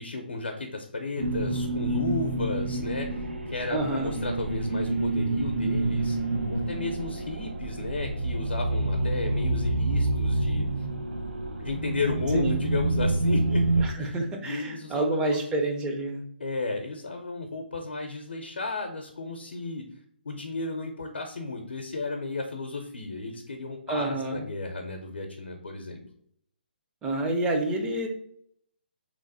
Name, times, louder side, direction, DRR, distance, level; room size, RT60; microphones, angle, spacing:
voice 1, 0.0-6.2 6.5-10.7 11.6-14.1 14.4-15.4 16.4-19.8 20.2-26.0, left 3 dB, 85° left, 2 dB, 0.6 m, -33 dB
sound 1, 1.2-13.9, right 2 dB, 80° right, 0.5 m, -28 dB
voice 2, 3.7-4.2 12.3-12.6 13.8-16.2 23.9-24.5 27.0-28.1, right 2 dB, 15° right, 2 dB, 0.4 m, -28 dB
2.9 x 2.1 x 4.0 m, 0.68 s
hypercardioid pair, 145°, 6 cm